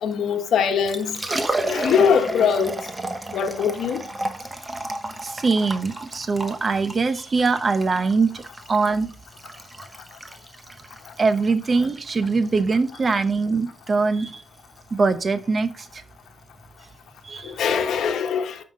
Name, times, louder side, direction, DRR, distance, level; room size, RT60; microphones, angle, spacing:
voice 1, 0.0-1.2 1.6-2.8 3.3-4.0 17.4-18.6, left 7 dB, 80° left, 1.2 m, -22 dB
Liquid, 0.7-18.0, right 2 dB, 20° right, 1.1 m, -34 dB
voice 2, 5.2-8.4 8.7-9.1 11.2-14.4 14.9-16.0 17.2-17.5, right 4 dB, 35° right, 0.8 m, -22 dB
9.5 x 5.8 x 3.7 m
cardioid pair, 120°, 0 cm